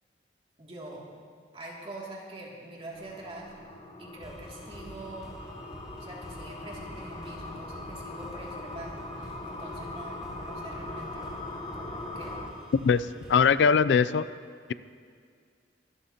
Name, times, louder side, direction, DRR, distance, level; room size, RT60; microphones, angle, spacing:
voice 1, 0.6-1.0 1.5-3.5 4.0-5.3 6.0-11.3 11.7-12.3, right 2 dB, 35° right, -4 dB, 2.5 m, -44 dB
sound 1, 2.9-12.5, left 2 dB, 30° left, 1.2 m, -41 dB
sound 2, 4.2-13.5, equal, 5° right, 2.5 m, -47 dB
voice 2, 12.8-14.3, left 6 dB, 75° left, 15 dB, 0.4 m, -22 dB
23.0 x 12.5 x 2.9 m, 2.1 s
head